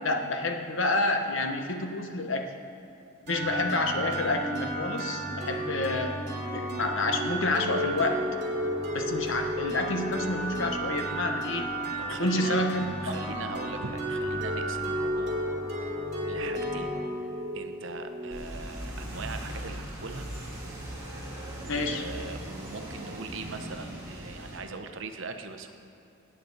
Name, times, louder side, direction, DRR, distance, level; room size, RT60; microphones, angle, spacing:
voice 1, 0.0-2.5 3.3-8.2 8.9-11.7 12.1-13.1 16.4-16.5 21.7-22.0, left 2 dB, 60° left, 4 dB, 1.0 m, -29 dB
sound 1, 3.3-18.9, equal, 35° right, 2.8 m, -32 dB
voice 2, 12.0-12.6 13.0-15.4 15.8-16.0 16.3-17.0 17.5-20.3 21.5-25.7, right 4 dB, 55° right, 7 dB, 0.8 m, -40 dB
sound 2, 18.3-24.6, right 1 dB, 15° right, 2.0 m, -39 dB
18.0 x 9.2 x 4.1 m, 2.8 s
head